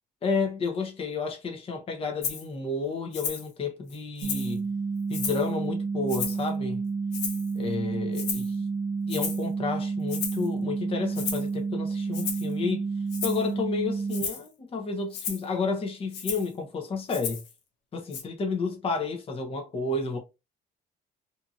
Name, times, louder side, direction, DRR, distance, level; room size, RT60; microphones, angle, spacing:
voice 1, 0.2-4.6 5.1-6.8 7.6-8.6 9.1-12.9 13.2-17.4 17.9-20.2, left 4 dB, 35° left, 0.7 m, -31 dB
Rattle (instrument), 2.2-2.4 3.1-3.5 3.9-4.6 5.1-5.5 6.1-6.5 7.1-7.6 8.1-8.5 9.1-9.5 10.1-10.5 11.1-11.5 12.1-12.5 13.1-13.5 14.1-14.5 15.1-15.4 16.1-16.5 17.1-17.5 18.1-18.2, left 6 dB, 85° left, 0.9 m, -34 dB
sound 1, 4.2-14.2, right 4 dB, 65° right, 1.0 m, -30 dB
2.7 x 2.5 x 2.6 m
cardioid pair, 110°, 17 cm